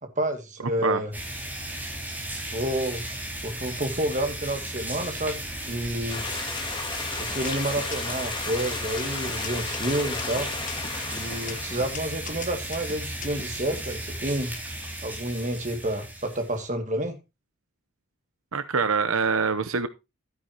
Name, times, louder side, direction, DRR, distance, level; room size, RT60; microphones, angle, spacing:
voice 1, 0.0-1.1 2.5-3.2 3.4-6.2 7.2-10.5 11.1-14.5 15.0-17.2, right 1 dB, 35° right, 2.2 m, -29 dB
sound 1, 1.1-16.6, right 1 dB, 10° right, 5.1 m, -35 dB
Stream, 6.1-12.2, left 4 dB, 20° left, 2.0 m, -34 dB
sound 2, 6.4-6.8 7.3-8.3 8.8-13.8, left 6 dB, 40° left, 1.1 m, -41 dB
voice 2, 18.5-19.9, right 5 dB, 75° right, 0.9 m, -24 dB
13.0 x 9.9 x 2.9 m
head